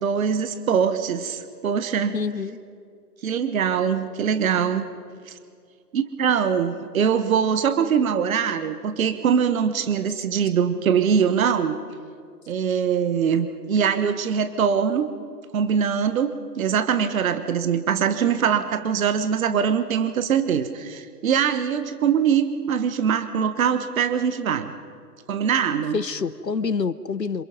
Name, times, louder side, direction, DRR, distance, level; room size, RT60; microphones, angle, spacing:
voice 1, 0.0-2.2 3.2-4.8 5.3-5.4 5.9-11.8 12.5-15.1 15.5-24.7 25.3-26.0, right 7 dB, 55° right, 10 dB, 1.4 m, -22 dB
voice 2, 2.1-2.6 25.9-27.4, left 5 dB, 85° left, 16 dB, 1.1 m, -27 dB
27.5 x 27.0 x 5.3 m, 2.3 s
figure-of-eight pair, 125°, 49 cm